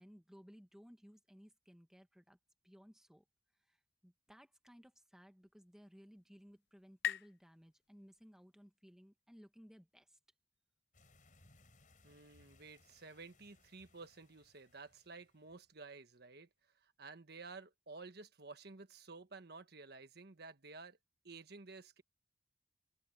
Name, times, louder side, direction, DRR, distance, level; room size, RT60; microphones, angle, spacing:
voice 1, 0.0-2.4 2.6-3.2 3.6-10.2, equal, 5° right, 1.6 m, -60 dB
sound 1, 5.6-8.9, left 9 dB, 60° left, 0.6 m, -46 dB
sound 2, 10.9-15.8, left 2 dB, 45° left, 4.9 m, -68 dB
voice 2, 12.0-16.5 16.8-21.0 21.2-22.0, right 3 dB, 60° right, 1.5 m, -53 dB
open air
head